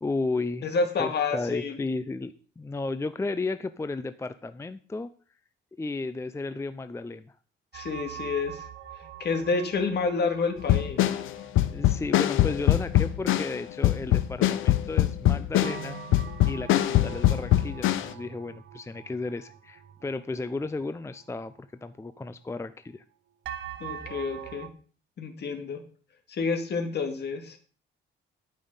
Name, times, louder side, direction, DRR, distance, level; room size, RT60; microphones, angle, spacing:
voice 1, 0.0-0.7 1.0-5.1 5.8-7.3 11.7-16.0 16.4-21.5 21.8-23.0, left 3 dB, 15° left, 12 dB, 0.5 m, -33 dB
voice 2, 0.6-1.8 7.7-8.6 9.2-11.1 23.8-24.7 25.2-25.8 26.3-27.6, left 4 dB, 55° left, 6 dB, 2.1 m, -29 dB
sound 1, 7.7-14.6 14.9-15.0 15.6-21.6 22.1-22.2 23.4-24.7, right 10 dB, 70° right, 1.0 m, -44 dB
sound 2, 10.6-18.1, left 13 dB, 85° left, 0.8 m, -23 dB
12.0 x 5.6 x 5.5 m, 0.41 s
cardioid pair, 90°, 20 cm